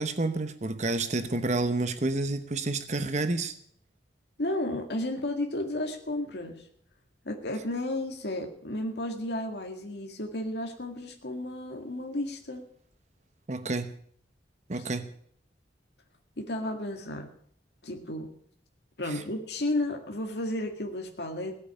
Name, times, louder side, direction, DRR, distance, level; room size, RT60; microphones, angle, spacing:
voice 1, 0.0-3.5 13.5-13.9 14.7-15.1 19.1-19.2, right 2 dB, 40° right, 10 dB, 0.9 m, -29 dB
voice 2, 4.4-6.6 7.3-12.6 14.7-14.9 16.4-17.3 17.8-18.3 19.0-21.6, left 1 dB, 65° left, 3 dB, 2.0 m, -33 dB
17.5 x 8.1 x 9.8 m, 0.64 s
head